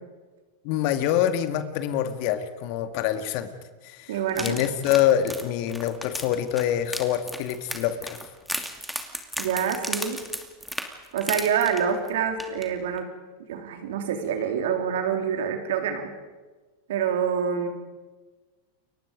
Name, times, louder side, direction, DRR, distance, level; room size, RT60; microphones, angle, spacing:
voice 1, 0.6-3.5 3.8-8.2, left 11 dB, 50° left, 9 dB, 2.1 m, -25 dB
voice 2, 4.1-4.6 9.4-10.2 11.1-13.1 13.5-16.1 16.9-17.7, right 7 dB, 65° right, 5 dB, 3.5 m, -26 dB
sound 1, 4.3-12.1 12.4-12.6 13.0-13.1, equal, ahead, 2.7 m, -35 dB
29.5 x 23.5 x 5.3 m, 1.3 s
hypercardioid pair, 95°, 0 cm